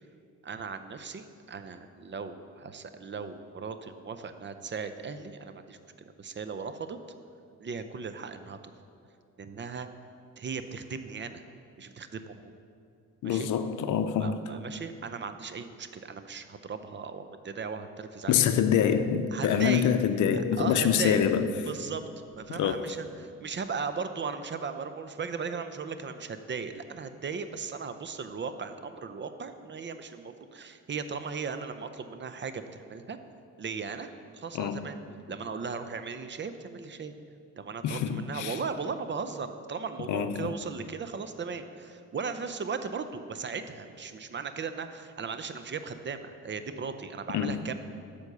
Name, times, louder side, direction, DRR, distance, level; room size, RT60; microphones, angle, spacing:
voice 1, 0.4-5.8 6.2-7.0 7.6-8.6 9.4-9.9 10.4-11.4 11.8-12.6 13.2-13.5 14.2-18.3 19.3-19.9 20.3-21.3 21.7-33.2 33.6-35.0 35.3-37.1 37.6-47.7, right 5 dB, 35° right, 10 dB, 0.6 m, -37 dB
voice 2, 13.2-14.4 18.3-21.5 22.5-22.9 34.5-34.9 37.8-38.6 40.1-40.5 47.3-47.6, left 8 dB, 70° left, 9 dB, 0.6 m, -26 dB
sound 1, 19.5-21.6 22.1-22.8 23.1-23.6, right 1 dB, 80° right, 2.1 m, -52 dB
8.1 x 5.3 x 6.7 m, 2.4 s
supercardioid pair, 70°, 31 cm